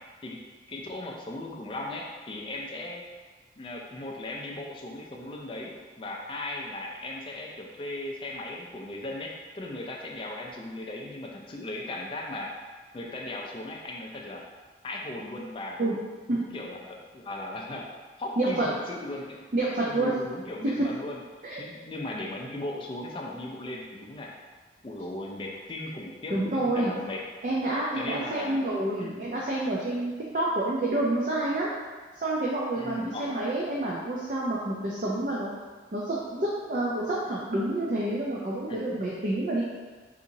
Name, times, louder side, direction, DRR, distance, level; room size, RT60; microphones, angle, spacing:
voice 1, 0.7-3.0 3.6-12.5 12.9-14.4 14.8-15.8 16.3-17.9 18.2-19.5 19.9-21.2 21.6-24.3 24.8-27.2 28.0-28.7 29.0-29.2 32.8-33.3 38.7-39.0, left 1 dB, 30° left, -1 dB, 0.4 m, -37 dB
voice 2, 18.4-18.7 19.5-20.1 20.6-20.9 21.4-21.6 26.3-26.9 27.4-31.7 32.2-35.5 35.9-39.6, right 1 dB, 45° right, -5 dB, 0.4 m, -28 dB
3.9 x 2.8 x 2.6 m, 1.4 s
head